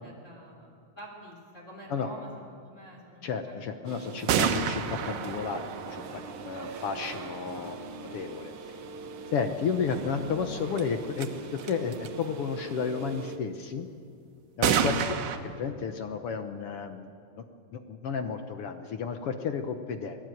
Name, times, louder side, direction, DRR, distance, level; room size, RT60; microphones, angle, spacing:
voice 1, 0.0-3.9 4.2-4.4 9.9-10.0 10.8-10.9, right 1 dB, 20° left, 0 dB, 3.3 m, -48 dB
voice 2, 3.2-8.7 9.3-13.9 14.6-15.0 15.4-17.1 17.4-17.5 17.7-20.2, left 6 dB, 65° left, 7 dB, 1.5 m, -32 dB
sound 1, 3.9-13.4, right 4 dB, 55° right, 1.7 m, -42 dB
sound 2, 4.3-7.1 10.8-10.9 11.2-11.3 11.6-12.1 14.6-15.4, right 7 dB, 80° right, 2.8 m, -29 dB
25.5 x 17.5 x 9.2 m, 2.4 s
omnidirectional pair, 3.8 m